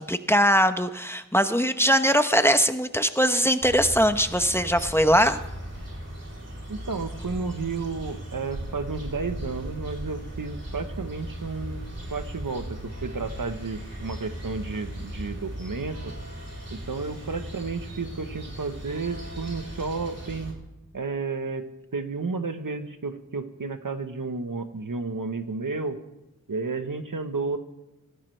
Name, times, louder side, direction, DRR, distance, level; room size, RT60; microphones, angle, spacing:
voice 1, 0.0-5.4, equal, 5° left, 9 dB, 0.9 m, -21 dB
sound 1, 3.6-20.5, equal, 50° right, 4.2 m, -37 dB
voice 2, 6.7-11.8 12.1-16.2 16.7-20.5 20.9-21.7 21.9-26.0 26.5-27.6, right 4 dB, 80° right, 8 dB, 1.2 m, -32 dB
18.5 x 15.0 x 3.3 m, 0.97 s
wide cardioid pair, 45°, 33 cm